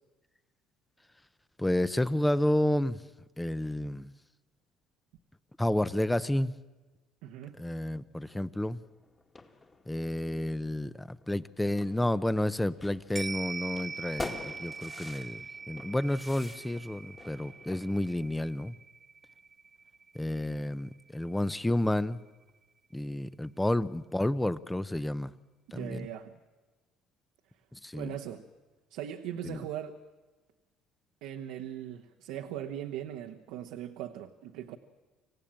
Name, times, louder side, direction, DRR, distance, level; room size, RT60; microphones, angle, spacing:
voice 1, 1.6-3.0 3.4-4.1 5.6-6.5 7.6-8.8 9.9-18.8 20.1-22.2 22.9-25.3 25.7-26.1 27.7-28.1 29.4-29.6, left 1 dB, 10° left, 16 dB, 0.7 m, -30 dB
voice 2, 7.2-7.6 25.7-26.4 27.9-28.4 28.9-30.0 31.2-34.8, right 10 dB, 85° right, 4 dB, 1.1 m, -39 dB
sound 1, 8.8-18.1, left 3 dB, 25° left, 2.2 m, -47 dB
sound 2, 13.2-21.7 22.1-22.2, right 5 dB, 25° right, 0.9 m, -43 dB
25.5 x 16.0 x 8.9 m, 1.2 s
supercardioid pair, 95°, 0 cm